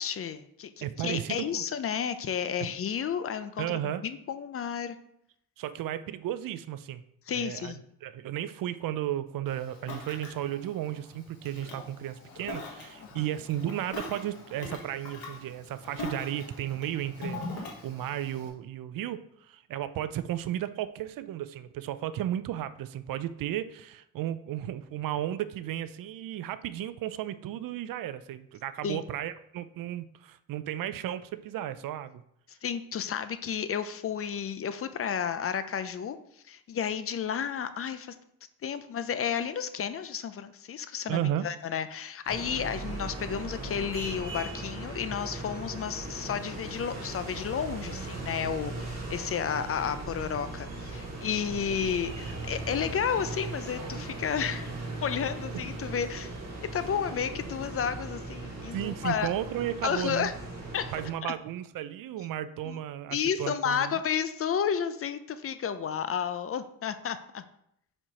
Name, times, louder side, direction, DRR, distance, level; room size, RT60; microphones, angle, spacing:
voice 1, 0.0-5.0 7.3-7.8 13.0-13.2 28.8-29.0 32.5-36.2 36.5-38.2 38.6-54.7 55.0-56.3 56.7-59.3 59.8-60.3 60.7-60.9 62.7-62.8 63.1-67.4, left 7 dB, 40° left, 11 dB, 0.4 m, -32 dB
voice 2, 0.8-1.6 3.6-4.0 5.6-7.0 7.3-32.2 41.1-41.5 55.5-55.6 58.7-60.3 60.9-64.0, right 12 dB, 70° right, 14 dB, 0.5 m, -34 dB
Ocean, 9.5-18.5, left 2 dB, 85° left, 1.6 m, -42 dB
sound 1, 42.3-61.1, right 2 dB, 50° right, 2.0 m, -38 dB
4.5 x 4.4 x 5.0 m, 0.75 s
cardioid pair, 105°, 35 cm